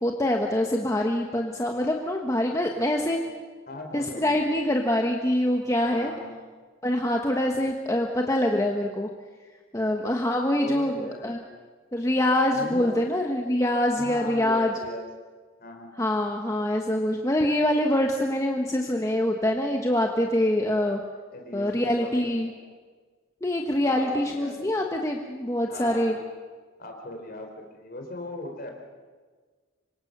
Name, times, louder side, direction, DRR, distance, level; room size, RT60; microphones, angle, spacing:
voice 1, 0.0-3.2 3.9-6.1 6.8-9.1 9.7-11.0 11.2-11.4 11.9-14.7 16.0-21.0 21.5-22.5 23.4-26.2, left 1 dB, 15° left, 2 dB, 1.3 m, -25 dB
voice 2, 2.7-3.3 3.7-4.4 5.9-6.4 10.6-11.5 12.5-12.9 14.0-15.1 15.6-15.9 21.3-22.6 23.8-25.0 25.7-26.2 26.8-28.7, left 1 dB, 45° left, 3 dB, 4.2 m, -39 dB
26.0 x 24.5 x 6.8 m, 1.5 s
head